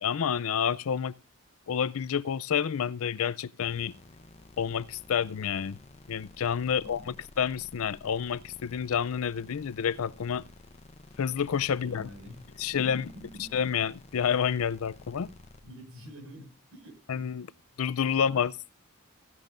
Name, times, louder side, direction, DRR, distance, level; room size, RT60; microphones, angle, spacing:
voice 1, 0.0-1.1 1.7-3.9 4.6-5.8 6.1-7.0 7.4-10.4 11.2-12.0 12.6-13.0 13.5-15.3 17.1-17.5 17.8-18.5, left 7 dB, 75° left, 0.4 m, -29 dB
sound 1, 3.6-15.6, left 2 dB, 30° left, 0.7 m, -52 dB
voice 2, 6.7-7.2 11.7-13.6 15.6-17.3, equal, 70° right, 5.6 m, -48 dB
15.0 x 10.5 x 2.5 m
head